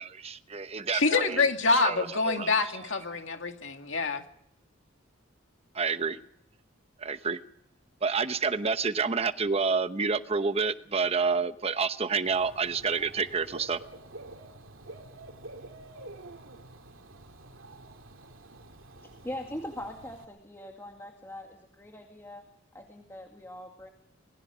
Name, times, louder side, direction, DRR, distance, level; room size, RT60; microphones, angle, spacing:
voice 1, 0.0-1.4 1.8-2.5 5.7-6.2 7.0-7.4 8.0-13.8, right 5 dB, 30° right, 11 dB, 1.0 m, -29 dB
voice 2, 0.9-4.2, left 3 dB, 65° left, 5 dB, 2.3 m, -26 dB
Dog / Bird, 12.2-20.2, right 2 dB, 80° right, 2.5 m, -48 dB
voice 3, 18.9-22.4 22.7-23.9, left 1 dB, 15° left, 1 dB, 2.2 m, -41 dB
27.0 x 21.0 x 5.1 m, 0.74 s
head